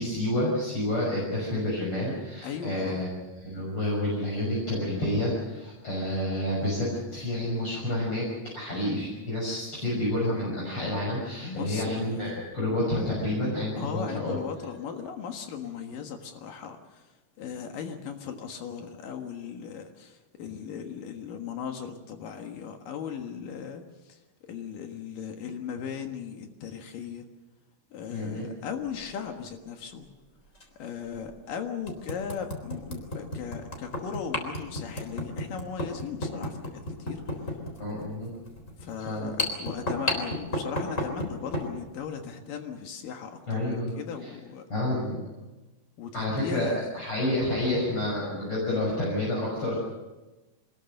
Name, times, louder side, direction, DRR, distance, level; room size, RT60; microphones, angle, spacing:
voice 1, 0.0-3.1 3.3-8.3 8.5-14.3 28.1-28.5 37.8-38.3 39.1-39.3 43.5-43.9 44.2-44.3 44.7-45.2 46.1-49.8, left 1 dB, 40° left, -5 dB, 6.9 m, -29 dB
voice 2, 2.4-3.1 11.4-12.2 13.7-17.1 17.4-24.2 24.5-27.3 27.9-30.1 30.8-37.6 38.8-44.7 46.0-46.9, left 7 dB, 80° left, 4 dB, 3.2 m, -38 dB
sound 1, 28.9-29.1 30.5-30.6 31.2-31.3 31.9-41.7, left 1 dB, 20° left, 4.0 m, -33 dB
25.0 x 21.0 x 6.6 m, 1.1 s
omnidirectional pair, 3.8 m